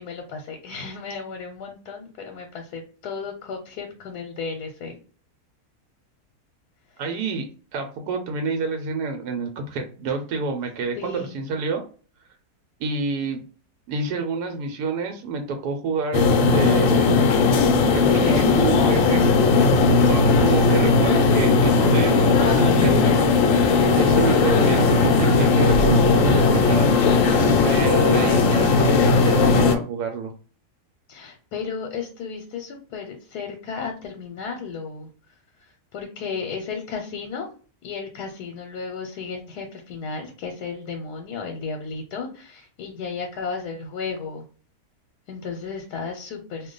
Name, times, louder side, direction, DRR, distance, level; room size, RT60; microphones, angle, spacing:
voice 1, 0.0-5.0 11.0-11.4 31.1-35.1 35.6-37.5 37.8-44.4 45.3-46.7, left 5 dB, 85° left, 3 dB, 1.2 m, -34 dB
voice 2, 7.0-7.5 7.7-11.8 12.8-13.4 13.9-17.2 17.9-19.2 20.1-23.3 23.6-27.4 27.6-30.3, right 4 dB, 85° right, 5 dB, 1.1 m, -28 dB
sound 1, 16.1-29.8, left 4 dB, 65° left, 0.9 m, -17 dB
2.5 x 2.2 x 3.8 m, 0.39 s
omnidirectional pair, 1.6 m